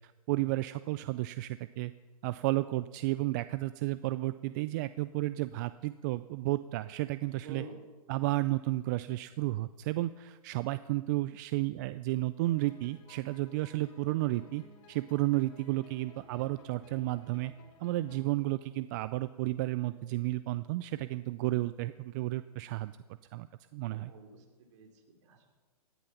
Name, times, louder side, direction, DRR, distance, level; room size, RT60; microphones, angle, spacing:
voice 1, 0.0-1.9 2.2-7.6 8.1-14.6 14.9-17.5 17.8-22.9 23.3-23.5 23.7-24.1, right 18 dB, 30° right, 14 dB, 0.4 m, -32 dB
voice 2, 7.3-7.8 23.9-25.5, right 3 dB, 50° right, 3 dB, 3.0 m, -49 dB
sound 1, 12.4-18.2, left 3 dB, 35° left, 3.0 m, -58 dB
17.5 x 11.0 x 5.8 m, 1.3 s
hypercardioid pair, 130°, 19 cm